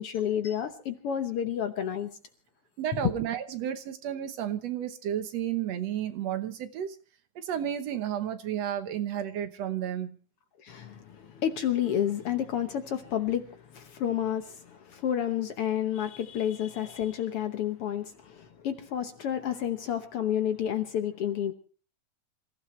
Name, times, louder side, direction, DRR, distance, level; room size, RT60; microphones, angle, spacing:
voice 1, 0.0-2.1 2.9-3.1 10.6-21.5, left 10 dB, 60° left, 1.7 m, -30 dB
voice 2, 2.8-7.0 7.4-10.2, right 10 dB, 65° right, 2.1 m, -32 dB
27.5 x 15.5 x 3.2 m
omnidirectional pair, 3.4 m